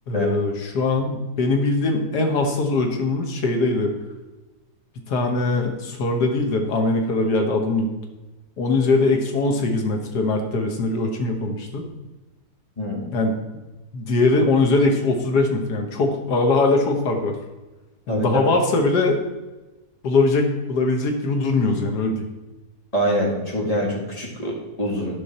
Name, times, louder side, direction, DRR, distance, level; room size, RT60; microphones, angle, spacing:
voice 1, 0.1-3.9 5.1-7.9 8.6-11.8 13.1-13.3 13.9-17.3 18.1-19.2 20.0-22.2, left 3 dB, 85° left, 3 dB, 1.8 m, -21 dB
voice 2, 12.8-13.1 18.1-18.4 22.9-25.2, equal, 25° left, -1 dB, 2.0 m, -24 dB
12.5 x 5.3 x 4.3 m, 1.1 s
omnidirectional pair, 1.7 m